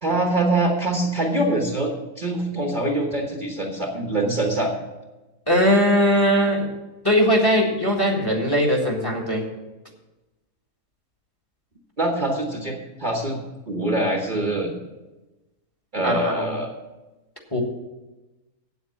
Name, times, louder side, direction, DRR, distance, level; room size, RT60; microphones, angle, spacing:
voice 1, 0.0-4.7 12.0-13.4 13.7-14.7 15.9-16.7, right 1 dB, 35° right, 1 dB, 1.3 m, -24 dB
voice 2, 5.5-6.7 7.0-9.4 16.0-16.5 17.5-17.6, equal, 15° left, 0 dB, 1.8 m, -20 dB
8.6 x 8.1 x 7.3 m, 1.1 s
omnidirectional pair, 1.6 m